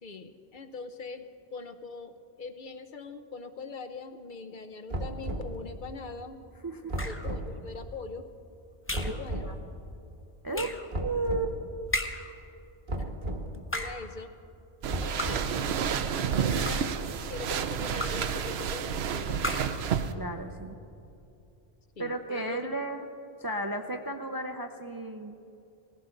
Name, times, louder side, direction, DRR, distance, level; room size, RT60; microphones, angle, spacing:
voice 1, 0.0-6.4 7.0-8.3 8.9-9.5 10.5-10.7 13.0-13.2 13.7-14.3 15.0-15.9 16.4-19.6 22.0-22.7, left 4 dB, 55° left, 9 dB, 0.8 m, -42 dB
sound 1, 4.9-5.5 6.9-7.5 8.9-9.5 10.9-11.5 12.9-13.5 14.9-15.6, right 1 dB, 50° right, 1.4 m, -34 dB
voice 2, 6.6-7.0 9.4-9.6 10.4-10.7 11.0-11.6 20.2-20.8 22.0-23.1 23.4-25.3, right 2 dB, 30° right, 5 dB, 0.4 m, -33 dB
sound 2, 7.0-7.4 8.9-9.3 10.5-10.9 11.9-12.4 13.5-14.1 15.2-15.6 16.4-17.0 18.0-18.4 19.4-19.9, left 1 dB, 15° left, 0.7 m, -35 dB
sound 3, 14.8-20.1, right 7 dB, 80° right, 0.9 m, -30 dB
18.5 x 15.5 x 3.9 m, 2.8 s
omnidirectional pair, 1.1 m